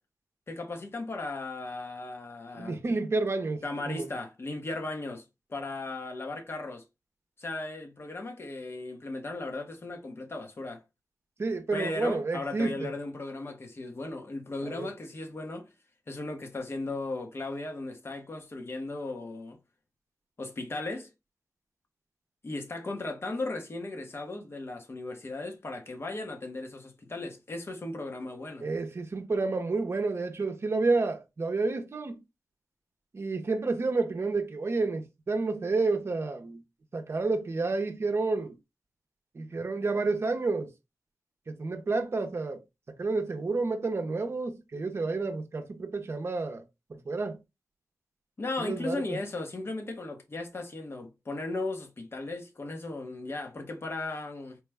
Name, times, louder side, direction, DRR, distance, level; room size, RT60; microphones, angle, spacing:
voice 1, 0.5-2.8 3.6-5.2 5.5-6.8 7.4-10.8 11.7-15.7 16.1-19.6 20.4-21.1 22.4-28.7 48.4-54.6, left 2 dB, 45° left, 0.9 m, -36 dB
voice 2, 2.5-4.1 11.4-12.9 14.6-14.9 28.6-32.2 33.1-36.6 36.9-38.6 39.3-40.7 41.5-42.6 43.0-46.6 46.9-47.4 48.6-49.2, right 3 dB, 45° right, 0.6 m, -30 dB
4.6 x 2.1 x 3.4 m
wide cardioid pair, 105°, 6 cm